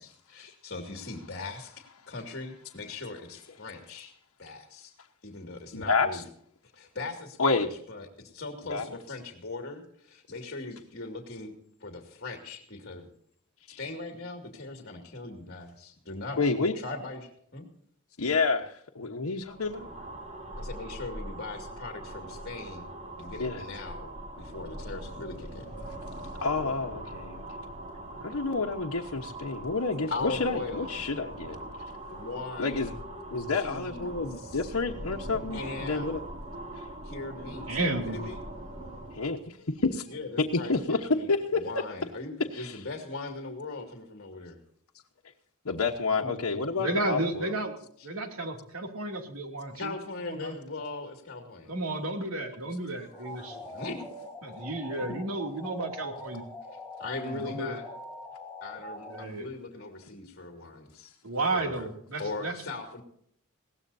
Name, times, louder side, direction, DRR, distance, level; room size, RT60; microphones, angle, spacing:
voice 1, 0.0-1.7 2.1-4.1 4.4-4.9 5.2-6.2 6.7-11.5 11.8-13.1 13.8-16.4 16.7-17.7 20.6-22.9 23.2-25.7 30.1-31.0 32.1-33.0 33.5-34.6 35.5-36.2 37.0-38.4 40.1-40.3 40.6-41.3 41.5-44.6 49.7-51.7 53.0-54.1 57.0-57.8 58.6-61.1 61.5-61.9 62.2-63.0, left 3 dB, 50° left, 3 dB, 2.3 m, -39 dB
voice 2, 5.7-6.2 7.4-7.7 8.7-8.9 13.7-13.8 16.4-16.7 18.2-19.9 23.4-23.6 25.9-26.0 26.4-27.4 28.2-31.6 32.6-32.9 33.3-36.2 36.7-36.9 39.1-41.8 42.5-42.8 45.6-47.5, left 3 dB, 90° left, 1 dB, 1.2 m, -29 dB
sound 1, 19.4-39.3, right 1 dB, 35° right, 2.8 m, -41 dB
voice 3, 37.7-38.2 46.2-46.3 46.7-47.7 48.0-49.9 50.2-50.6 51.7-53.6 54.4-56.4 57.2-57.8 59.1-59.5 61.2-62.5, right 2 dB, 85° right, 4 dB, 2.8 m, -32 dB
sound 2, 53.1-59.3, left 1 dB, 5° left, 3.0 m, -43 dB
21.0 x 17.0 x 2.7 m, 0.66 s
head